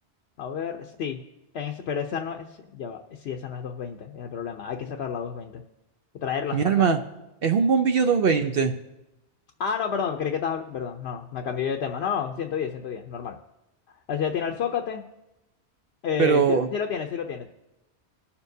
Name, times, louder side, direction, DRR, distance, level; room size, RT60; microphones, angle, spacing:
voice 1, 0.4-1.2 1.5-2.5 2.7-5.6 6.2-6.9 9.6-13.3 13.9-15.0 16.0-17.5, left 7 dB, 70° left, 3 dB, 0.9 m, -30 dB
voice 2, 6.5-7.0 7.4-8.7 16.2-16.7, right 6 dB, 60° right, 6 dB, 0.8 m, -21 dB
20.0 x 7.1 x 2.7 m, 0.96 s
omnidirectional pair, 1.2 m